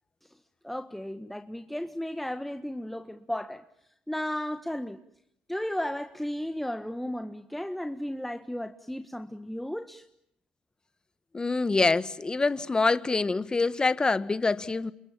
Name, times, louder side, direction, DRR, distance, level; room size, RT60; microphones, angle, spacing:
voice 1, 0.6-3.6 4.1-5.0 5.5-10.0, left 1 dB, 5° left, 1.5 m, -34 dB
voice 2, 11.3-14.9, left 3 dB, 25° left, 1.6 m, -25 dB
29.0 x 28.0 x 7.4 m
supercardioid pair, 65°, 3 cm